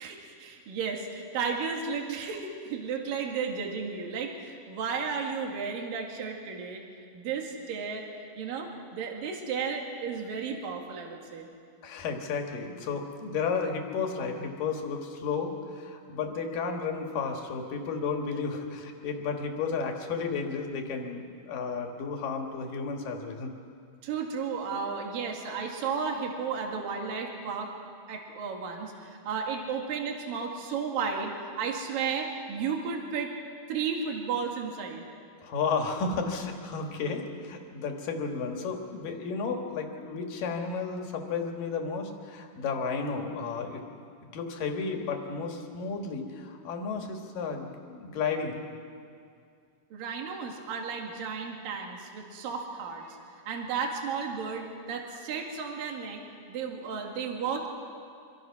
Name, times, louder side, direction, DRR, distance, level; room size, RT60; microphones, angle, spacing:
voice 1, 0.0-6.8 7.1-8.0 8.4-11.5 24.0-27.7 28.1-33.3 33.7-35.0 49.9-53.2 53.5-56.2 56.5-57.7, right 5 dB, 70° right, 1 dB, 3.7 m, -33 dB
voice 2, 11.8-23.5 35.4-43.8 44.3-48.7, left 5 dB, 65° left, 3 dB, 3.5 m, -33 dB
25.0 x 25.0 x 6.1 m, 2.3 s
omnidirectional pair, 4.3 m